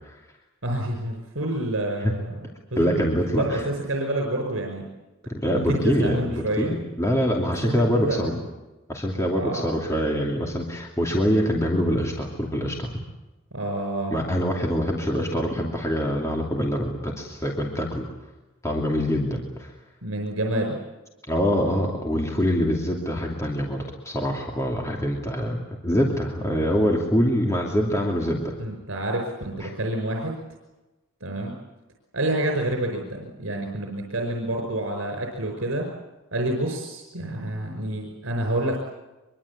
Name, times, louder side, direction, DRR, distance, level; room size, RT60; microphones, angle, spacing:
voice 1, 0.6-4.8 5.5-6.7 7.6-8.4 9.3-9.7 13.5-14.1 20.0-20.7 28.6-30.4 31.2-31.5 32.1-35.9 36.3-38.8, right 1 dB, 75° right, 2 dB, 5.5 m, -28 dB
voice 2, 2.8-3.6 5.3-8.3 8.9-12.9 14.1-18.0 18.6-19.7 21.3-25.6 25.8-28.5 29.6-29.7, equal, 15° left, -1 dB, 2.8 m, -24 dB
24.0 x 23.5 x 8.6 m, 1.1 s
head